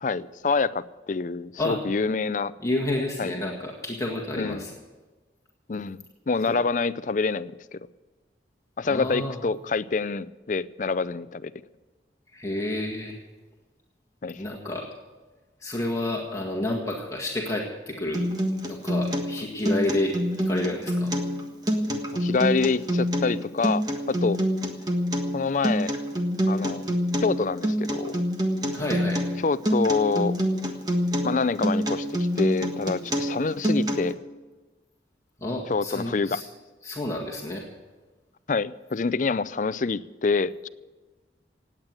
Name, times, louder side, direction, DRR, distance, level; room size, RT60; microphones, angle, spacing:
voice 1, 0.0-2.5 3.2-3.4 4.4-4.6 5.7-7.8 8.8-11.5 14.2-14.4 21.9-24.4 25.3-25.9 26.5-26.9 27.2-28.2 29.4-30.4 31.2-34.1 35.7-36.4 38.5-40.7, left 4 dB, 45° left, 16 dB, 0.5 m, -26 dB
voice 2, 2.6-4.7 6.5-6.6 8.9-9.4 12.3-13.2 14.4-14.9 15.6-18.4 18.7-20.2 20.5-21.1 28.7-29.2 35.4-36.4 36.8-37.6, left 1 dB, 20° left, -1 dB, 1.8 m, -30 dB
Acoustic guitar, 18.1-34.1, equal, 20° right, 1.5 m, -26 dB
18.0 x 8.9 x 7.7 m, 1.3 s
head